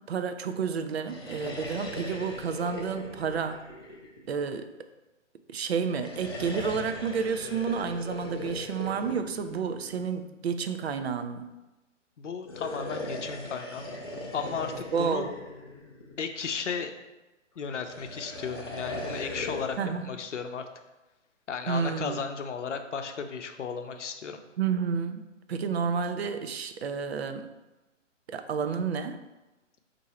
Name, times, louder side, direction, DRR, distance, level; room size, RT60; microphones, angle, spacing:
voice 1, 0.0-3.6 4.3-4.7 5.5-11.5 14.9-15.3 19.8-20.1 21.7-22.3 24.6-25.2 25.5-27.5 28.3-29.2, right 6 dB, 55° right, 9 dB, 0.5 m, -30 dB
sound 1, 0.9-4.6 5.9-10.2 12.4-16.4 17.7-19.9, left 2 dB, 20° left, 0.4 m, -39 dB
voice 2, 12.2-13.8 14.3-15.3 16.2-16.9 17.6-20.7 21.5-24.4, left 6 dB, 70° left, 6 dB, 0.7 m, -34 dB
4.5 x 2.7 x 4.1 m, 1.1 s
figure-of-eight pair, 135°, 38 cm